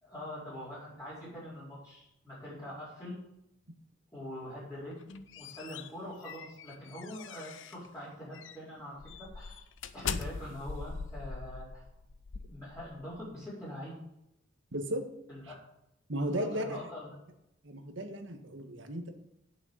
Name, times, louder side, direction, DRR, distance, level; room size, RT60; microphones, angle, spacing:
voice 1, 0.0-3.2 4.1-9.7 9.9-11.8 12.5-14.0 15.3-15.6 16.3-17.1, left 1 dB, 15° left, -10 dB, 4.6 m, -44 dB
sound 1, 4.9-7.9 8.3-8.6 9.0-13.2, left 5 dB, 75° left, 0.6 m, -41 dB
voice 2, 14.7-15.0 16.1-16.8 17.6-19.1, right 1 dB, 75° right, 6 dB, 1.7 m, -35 dB
9.1 x 6.7 x 8.0 m, 0.84 s
head